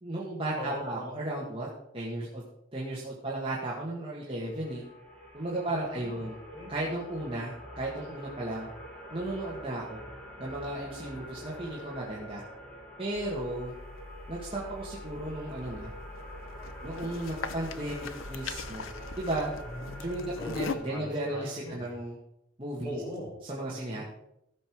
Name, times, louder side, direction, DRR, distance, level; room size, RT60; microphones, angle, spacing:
voice 1, 0.0-1.7 1.9-2.4 2.7-4.8 5.3-6.4 6.7-8.7 9.1-10.0 10.4-12.4 13.0-13.7 14.3-15.9 16.8-18.9 19.2-19.5 20.0-22.2 22.6-23.0 23.4-24.0, right 1 dB, 25° right, -5 dB, 1.8 m, -35 dB
voice 2, 0.6-1.2 5.7-6.7 19.6-21.9 22.8-23.3 23.7-24.0, left 1 dB, 20° left, -3 dB, 5.1 m, -41 dB
sound 1, 4.3-21.1, equal, 5° left, 2.2 m, -46 dB
sound 2, 13.1-20.8, left 4 dB, 85° left, 0.7 m, -41 dB
14.5 x 6.6 x 4.8 m, 0.81 s
head